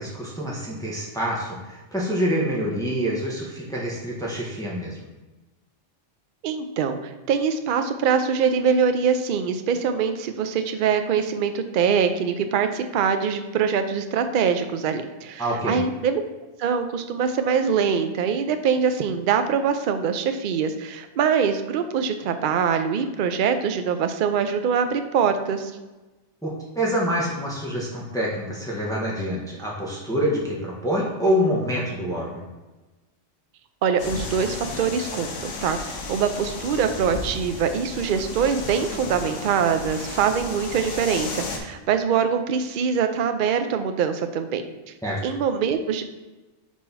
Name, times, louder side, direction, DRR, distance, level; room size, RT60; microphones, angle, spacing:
voice 1, 0.0-5.1 15.4-15.8 26.4-32.5 45.0-45.2, equal, 5° left, -4 dB, 1.2 m, -26 dB
voice 2, 6.4-16.2 16.6-25.7 33.8-44.6 45.2-46.0, right 6 dB, 55° right, 8 dB, 0.6 m, -23 dB
sound 1, 34.0-41.6, left 3 dB, 90° left, 1.3 m, -34 dB
4.6 x 4.3 x 5.5 m, 1.1 s
omnidirectional pair, 1.2 m